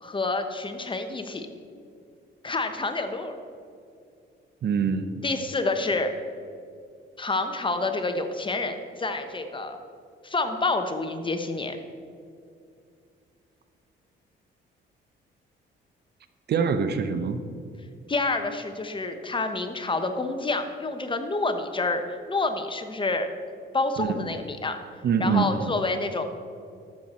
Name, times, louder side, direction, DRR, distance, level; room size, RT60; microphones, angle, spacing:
voice 1, 0.0-1.5 2.4-3.3 5.2-6.1 7.2-9.8 10.2-11.8 18.1-23.3 23.7-24.8 25.2-26.2, left 3 dB, 25° left, 7 dB, 1.0 m, -28 dB
voice 2, 4.6-5.1 16.5-17.4 24.0-24.3 25.0-25.7, right 6 dB, 55° right, 9 dB, 0.8 m, -25 dB
11.5 x 7.9 x 4.3 m, 2.4 s
cardioid pair, 90°, 20 cm